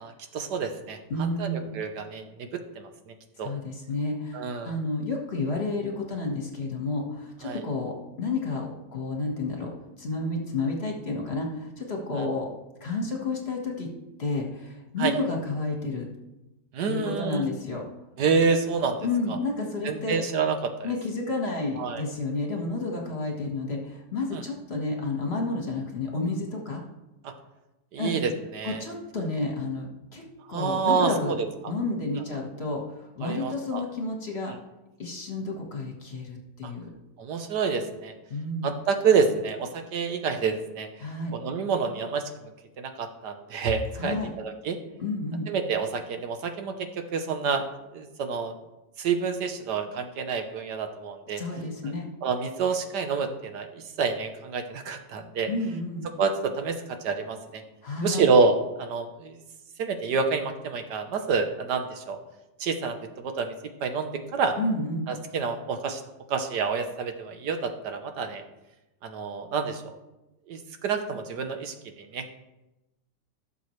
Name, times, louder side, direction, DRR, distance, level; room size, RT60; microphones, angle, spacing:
voice 1, 0.0-3.5 4.3-4.7 7.4-7.6 15.0-15.1 16.7-17.5 18.2-19.4 19.8-20.9 21.8-22.0 24.3-24.4 27.2-27.3 27.9-28.8 30.5-31.5 33.2-33.8 34.5-34.6 36.6-36.7 37.2-38.1 38.6-40.9 41.3-42.5 42.8-44.8 45.5-47.7 47.9-48.5 49.0-51.4 52.2-55.5 56.2-57.6 58.0-59.4 59.8-62.2 62.6-63.5 63.8-64.6 65.1-66.0 66.3-68.4 69.0-69.9 70.5-72.3, right 5 dB, 75° right, 6 dB, 1.5 m, -28 dB
voice 2, 1.1-1.7 3.4-9.7 10.0-12.5 12.8-13.9 14.2-16.1 16.9-17.8 19.0-20.2 20.8-26.8 28.0-28.2 28.6-30.2 30.5-31.3 31.7-34.5 35.0-36.9 38.3-38.7 41.0-41.3 44.0-44.3 45.0-45.5 51.4-52.1 55.5-56.1 57.8-58.3 64.6-65.1, left 3 dB, 40° left, 0 dB, 1.6 m, -30 dB
16.0 x 6.9 x 3.2 m, 0.98 s
omnidirectional pair, 1.9 m